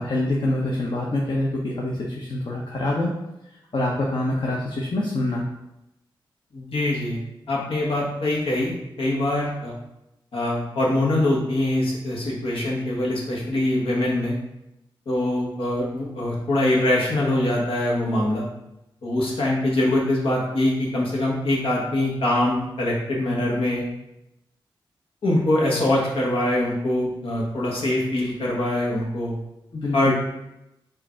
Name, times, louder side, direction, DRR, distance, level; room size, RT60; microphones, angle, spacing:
voice 1, 0.0-3.1 3.7-5.4 29.7-30.1, left 1 dB, 60° left, -3 dB, 0.8 m, -25 dB
voice 2, 6.5-7.2 7.5-8.7 9.0-9.7 10.3-14.3 15.1-18.5 19.0-23.8 25.2-29.4 29.9-30.1, left 1 dB, 85° left, -4 dB, 1.2 m, -23 dB
4.7 x 2.6 x 4.3 m, 0.89 s
cardioid pair, 60°, 9 cm